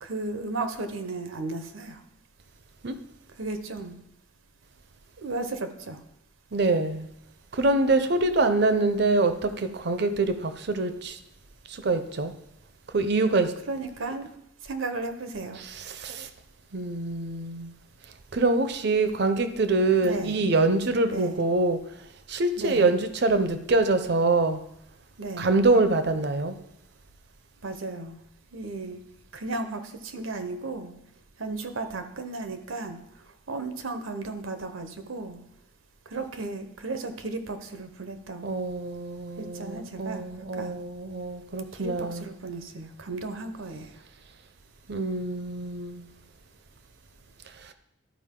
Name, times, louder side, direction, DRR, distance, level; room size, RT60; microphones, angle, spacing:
voice 1, 0.0-2.0 3.4-4.0 5.2-6.0 13.7-14.3 14.6-15.6 20.0-20.4 21.1-21.4 22.6-22.9 25.2-25.5 27.6-28.2 28.5-29.0 29.3-30.9 31.4-33.0 33.5-35.4 36.1-38.5 39.4-40.3 40.5-40.7 41.7-43.9, right 3 dB, 80° right, 0.8 m, -34 dB
voice 2, 6.5-7.1 7.5-11.2 11.7-12.3 12.9-13.5 15.6-16.3 16.7-17.7 18.3-21.8 22.3-24.6 25.4-26.6 38.4-42.3 44.9-46.1 47.6-47.7, right 3 dB, 55° right, 0.6 m, -25 dB
12.5 x 4.9 x 3.7 m
head